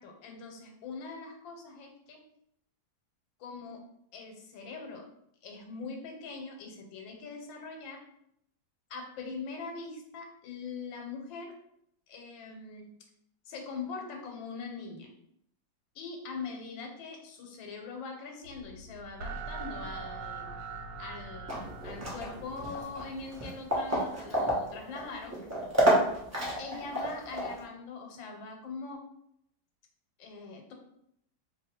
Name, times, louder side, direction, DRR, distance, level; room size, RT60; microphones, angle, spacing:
voice 1, 0.0-2.2 3.4-3.8 4.1-5.0 5.4-8.0 8.9-11.6 12.1-12.9 13.5-15.1 15.9-20.6 21.0-25.4 26.6-29.0 30.2-30.7, left 4 dB, 85° left, 2 dB, 1.4 m, -42 dB
sound 1, 18.4-23.5, right 4 dB, 75° right, 1.2 m, -42 dB
sound 2, 21.5-27.6, equal, 25° right, 0.3 m, -30 dB
2.8 x 2.7 x 4.2 m, 0.75 s
omnidirectional pair, 2.1 m